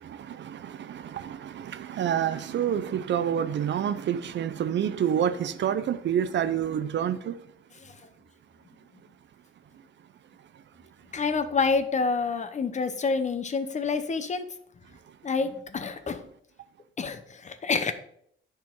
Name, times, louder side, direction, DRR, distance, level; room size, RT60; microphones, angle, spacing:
voice 1, 0.0-7.4, right 9 dB, 60° right, 0.5 m, -28 dB
voice 2, 11.1-14.5 15.2-16.2 17.0-17.9, left 4 dB, 35° left, 0.7 m, -28 dB
10.5 x 4.5 x 3.7 m
cardioid pair, 120°, 21 cm